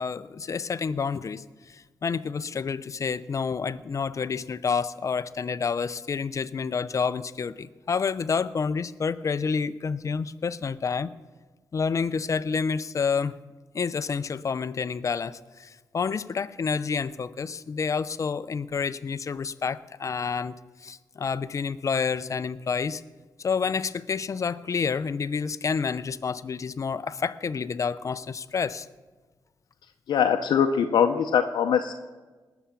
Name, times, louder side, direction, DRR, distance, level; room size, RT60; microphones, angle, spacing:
voice 1, 0.0-11.1 11.7-13.4 13.7-20.6 20.8-23.0 23.4-28.9, left 5 dB, 45° left, 15 dB, 0.6 m, -29 dB
voice 2, 30.1-31.9, left 7 dB, 80° left, 4 dB, 0.7 m, -22 dB
19.0 x 7.0 x 7.1 m, 1.3 s
cardioid pair, 85°, 7 cm